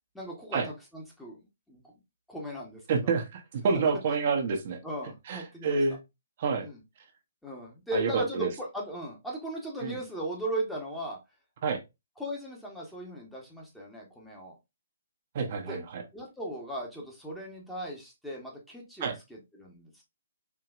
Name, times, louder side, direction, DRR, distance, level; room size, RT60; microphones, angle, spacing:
voice 1, 0.1-1.4 1.7-1.9 2.3-3.1 3.7-3.9 4.8-5.8 6.6-6.8 7.4-11.2 12.2-14.5 15.7-15.8 16.1-20.0, right 1 dB, 5° left, -2 dB, 1.1 m, -37 dB
voice 2, 2.9-4.8 5.3-6.0 6.4-6.7 7.9-8.5 9.8-10.0 11.6-11.8 15.3-16.0 19.0-19.2, right 5 dB, 45° right, 3 dB, 0.9 m, -28 dB
4.5 x 2.8 x 2.4 m, 0.22 s
hypercardioid pair, 140°, 0 cm